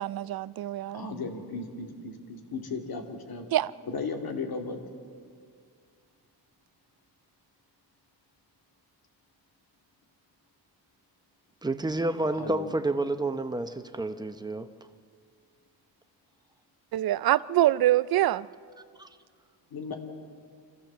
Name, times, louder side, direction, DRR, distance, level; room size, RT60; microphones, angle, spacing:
voice 1, 0.0-1.1 3.5-3.7 16.9-18.5, right 14 dB, 60° right, 0.5 m, -25 dB
voice 2, 0.9-3.5 3.9-4.8 12.4-12.7 19.7-19.9, left 4 dB, 60° left, 2.5 m, -35 dB
voice 3, 11.6-14.7 19.0-19.1, right 2 dB, 10° right, 0.7 m, -29 dB
25.5 x 15.0 x 7.3 m
wide cardioid pair, 150°, 41 cm